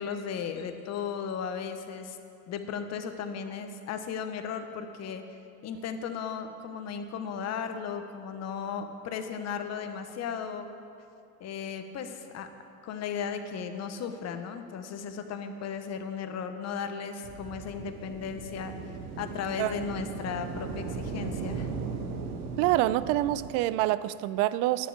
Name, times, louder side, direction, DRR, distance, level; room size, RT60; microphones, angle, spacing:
voice 1, 0.0-2.2 2.5-5.2 5.6-10.7 11.4-12.5 12.8-18.7 19.2-21.7, left 6 dB, 35° left, 7 dB, 1.1 m, -35 dB
sound 1, 17.2-23.5, right 5 dB, 85° right, 1.4 m, -37 dB
voice 2, 22.6-24.9, right 15 dB, 55° right, 17 dB, 0.5 m, -26 dB
10.5 x 7.0 x 8.7 m, 2.5 s
supercardioid pair, 110°, 43 cm